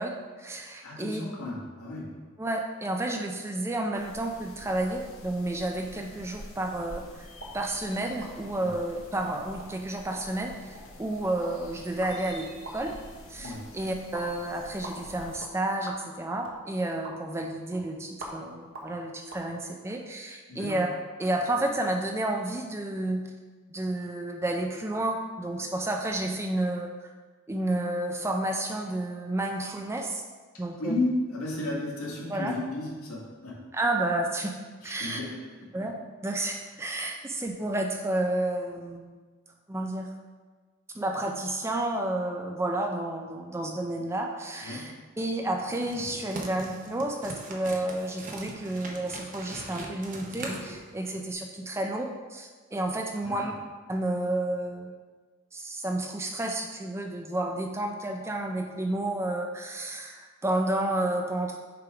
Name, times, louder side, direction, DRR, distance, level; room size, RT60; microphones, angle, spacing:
voice 1, 0.0-1.2 2.4-7.3 7.5-13.0 13.3-20.9 21.2-23.2 23.7-27.1 27.5-30.2 30.6-30.9 32.3-32.5 33.7-34.5 34.8-35.2 35.7-35.9 36.2-39.1 39.7-40.1 40.9-53.5 53.9-54.9 55.5-61.6, right 1 dB, 10° right, 2 dB, 0.3 m, -31 dB
voice 2, 0.8-2.1 8.6-8.7 13.4-13.6 20.5-20.8 30.8-33.5 34.8-35.4 44.6-44.8 53.2-53.5, left 2 dB, 80° left, -5 dB, 1.8 m, -33 dB
sound 1, 3.9-15.4, left 1 dB, 65° left, 1.0 m, -48 dB
sound 2, 7.3-19.5, right 1 dB, 65° right, 0.9 m, -47 dB
sound 3, 45.7-51.3, right 2 dB, 35° right, 0.7 m, -41 dB
6.8 x 3.5 x 4.8 m, 1.4 s
head